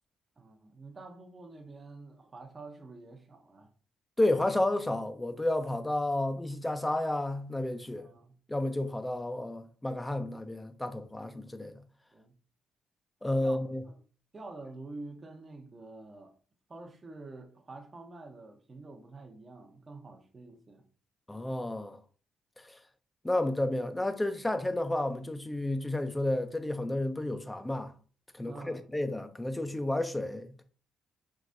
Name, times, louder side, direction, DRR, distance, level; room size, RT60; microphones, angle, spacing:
voice 1, 0.4-3.7 8.0-8.3 12.1-12.3 13.4-13.6 13.8-14.0 14.3-16.3 16.7-20.8 28.5-28.8, right 3 dB, 30° right, 0.8 m, -47 dB
voice 2, 4.2-8.1 8.5-11.8 13.2-13.8 21.3-22.0 22.6-22.8 23.2-27.9 28.3-30.6, left 1 dB, 10° left, 0.6 m, -31 dB
4.7 x 3.2 x 2.6 m
cardioid pair, 90°, 0 cm